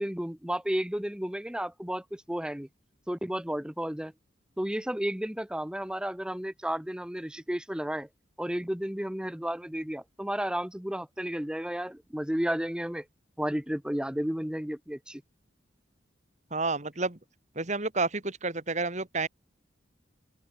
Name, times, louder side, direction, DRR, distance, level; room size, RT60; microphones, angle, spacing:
voice 1, 0.0-2.7 3.1-4.1 4.6-8.1 8.4-13.0 13.4-15.2, equal, 5° right, 0.6 m, -32 dB
voice 2, 16.5-17.2 17.6-19.3, right 3 dB, 40° right, 2.4 m, -30 dB
open air
head